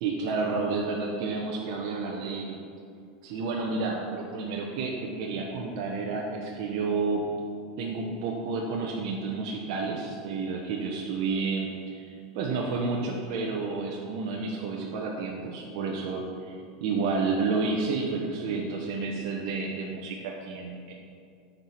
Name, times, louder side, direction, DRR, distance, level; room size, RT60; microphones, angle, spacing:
voice 1, 0.0-2.6 3.2-7.3 7.8-16.5 16.8-20.9, right 4 dB, 60° right, -1 dB, 0.9 m, -30 dB
8.9 x 4.6 x 5.8 m, 2.4 s
supercardioid pair, 140°, 3 cm